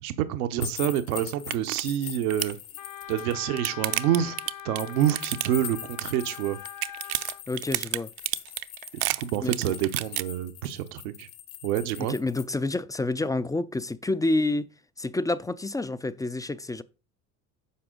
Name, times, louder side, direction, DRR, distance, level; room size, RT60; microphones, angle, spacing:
voice 1, 0.0-2.6 3.1-4.4 4.6-6.6 9.1-11.3 11.6-12.1, right 11 dB, 80° right, 0.9 m, -27 dB
sound 1, 0.6-3.3 4.8-12.4, left 12 dB, 70° left, 1.7 m, -41 dB
sound 2, 0.9-1.0 1.3-1.8 2.1-2.6 3.2-5.7 6.0-6.4 6.7-10.2, right 18 dB, 55° right, 0.7 m, -30 dB
Wind instrument woodwind instrument, 2.8-7.4, left 12 dB, 50° left, 0.8 m, -42 dB
voice 2, 7.5-8.1 9.4-9.7 12.0-14.7 15.0-16.8, left 2 dB, 10° left, 0.4 m, -28 dB
9.8 x 5.9 x 3.8 m
hypercardioid pair, 80°, 44 cm